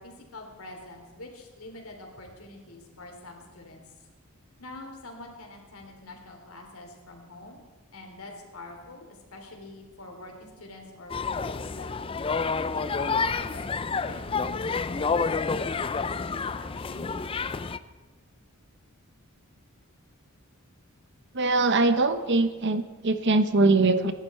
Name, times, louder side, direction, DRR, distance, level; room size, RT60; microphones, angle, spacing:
voice 1, 0.0-3.8 4.6-7.6 7.9-11.9 12.5-15.2 15.5-17.1, left 2 dB, 75° left, 2 dB, 3.5 m, -45 dB
sound 1, 11.1-17.8, left 4 dB, 25° left, 0.4 m, -29 dB
voice 2, 21.3-24.1, right 3 dB, 50° right, 10 dB, 1.0 m, -22 dB
26.0 x 11.5 x 4.4 m, 1.3 s
head